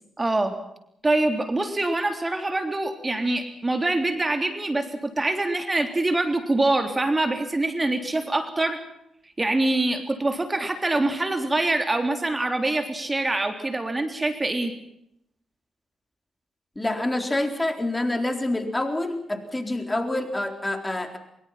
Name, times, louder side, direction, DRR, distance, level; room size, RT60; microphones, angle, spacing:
voice 1, 0.2-0.6 1.0-8.8 9.4-14.7, right 2 dB, 25° right, 6 dB, 3.4 m, -24 dB
voice 2, 16.8-21.2, left 1 dB, 20° left, 6 dB, 4.1 m, -27 dB
23.5 x 23.5 x 5.8 m, 0.77 s
supercardioid pair, 50°, 0 cm